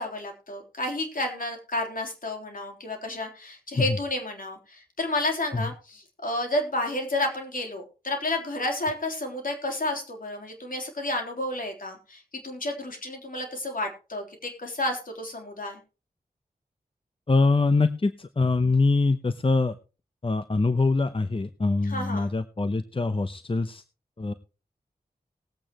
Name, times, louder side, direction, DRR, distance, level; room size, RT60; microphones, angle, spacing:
voice 1, 0.0-15.8 21.8-22.3, left 1 dB, 60° left, 2 dB, 3.6 m, -31 dB
voice 2, 17.3-19.7 20.2-23.8 24.2-24.3, left 3 dB, 35° left, 11 dB, 0.8 m, -24 dB
19.5 x 8.5 x 3.0 m, 0.33 s
cardioid pair, 45°, 16 cm